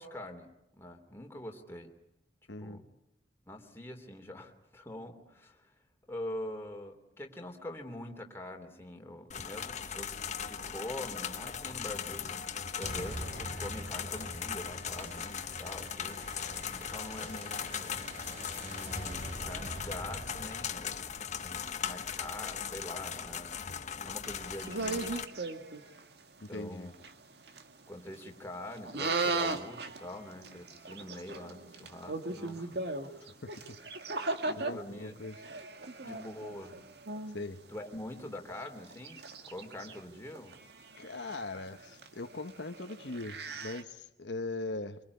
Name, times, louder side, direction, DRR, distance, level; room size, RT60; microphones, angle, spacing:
voice 1, 0.0-1.9 2.6-2.8 3.5-5.7 6.1-10.2 10.5-16.2 16.8-18.0 18.6-21.1 21.4-23.6 24.0-25.2 26.5-26.9 27.9-32.8 33.1-33.2 34.4-35.1 36.0-36.8 37.7-40.6, left 1 dB, 15° left, 3 dB, 3.0 m, -44 dB
voice 2, 2.5-2.8 26.4-26.9 33.4-33.8 34.2-35.4 37.3-37.6 41.0-45.0, left 2 dB, 80° left, 8 dB, 1.2 m, -40 dB
sound 1, 9.3-25.2, left 7 dB, 40° left, 1.1 m, -39 dB
sound 2, 12.8-21.8, equal, 45° right, 6.2 m, -44 dB
sound 3, 24.2-26.0 26.5-26.6 26.9-27.1 27.5-27.6 27.9-28.2 28.8-34.7 35.2-37.5 38.0-38.1 38.6-40.0 40.3-43.8, right 3 dB, 65° right, 2.1 m, -37 dB
25.0 x 24.0 x 9.6 m, 0.77 s
head